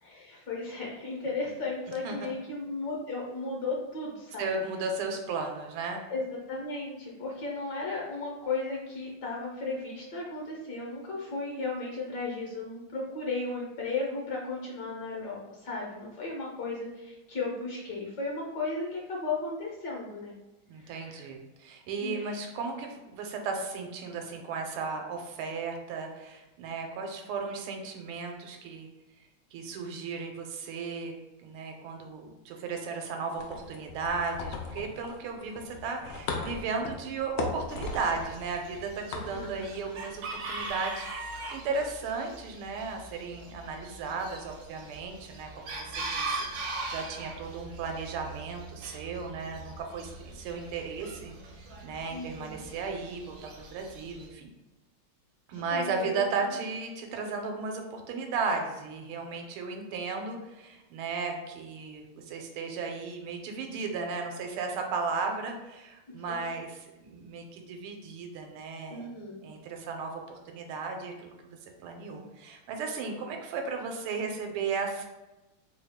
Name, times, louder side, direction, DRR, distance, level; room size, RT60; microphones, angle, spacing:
voice 1, 0.0-4.5 6.1-20.3 20.8-21.3 22.0-22.4 39.3-39.7 52.1-52.6 55.5-56.2 56.5-56.6 66.3-66.4 68.9-69.4, left 3 dB, 65° left, -3 dB, 1.1 m, -35 dB
voice 2, 4.4-6.0 20.7-28.9 29.5-31.1 31.4-51.3 51.8-54.5 55.5-69.1 69.4-71.6 71.8-75.0, right 4 dB, 85° right, 3 dB, 1.5 m, -35 dB
sound 1, 33.3-40.7, left 4 dB, 85° left, 0.9 m, -39 dB
Chicken rooster, 37.7-54.3, right 3 dB, 70° right, 1.0 m, -41 dB
3.4 x 2.3 x 3.4 m, 1.0 s
omnidirectional pair, 2.3 m